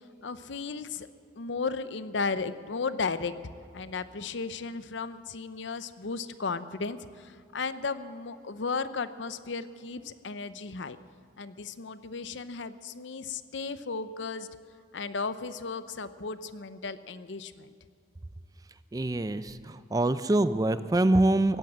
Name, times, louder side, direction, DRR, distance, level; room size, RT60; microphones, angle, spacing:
voice 1, 0.2-1.1 1.4-3.3 3.7-11.0 11.4-14.5 14.9-17.7, left 4 dB, 75° left, 13 dB, 0.7 m, -35 dB
voice 2, 18.9-21.6, right 2 dB, 20° right, 13 dB, 0.4 m, -25 dB
16.5 x 10.5 x 7.5 m, 2.4 s
head